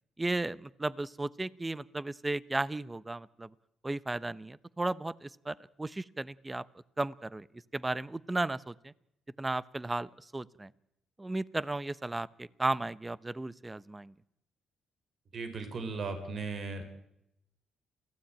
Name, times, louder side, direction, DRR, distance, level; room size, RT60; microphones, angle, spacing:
voice 1, 0.2-3.5 3.8-6.6 7.0-7.5 7.7-8.9 9.4-10.7 11.2-14.1, right 2 dB, 15° right, 19 dB, 0.9 m, -35 dB
voice 2, 15.3-16.8, right 4 dB, 50° right, 8 dB, 4.6 m, -37 dB
28.0 x 16.0 x 9.0 m, 0.80 s
cardioid pair, 90°, 0 cm